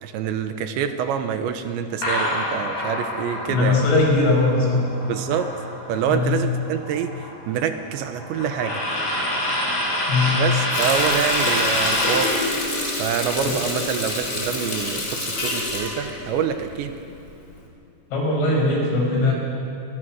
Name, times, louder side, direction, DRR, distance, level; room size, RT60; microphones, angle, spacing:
voice 1, 0.0-3.9 5.0-5.5 5.9-8.8 10.3-12.4 13.0-17.0, right 8 dB, 75° right, 8 dB, 3.2 m, -26 dB
sound 1, 2.0-6.1 6.4-12.4, left 1 dB, 50° left, 9.1 m, -26 dB
voice 2, 3.5-4.8 6.1-6.4 10.1-10.4 13.4-13.5 18.1-19.3, left 3 dB, 85° left, -1 dB, 7.8 m, -20 dB
Water tap faucet, 10.7-17.1 17.5-17.6, left 1 dB, 20° left, 3.6 m, -28 dB
27.0 x 20.0 x 6.4 m, 2.6 s
omnidirectional pair, 5.5 m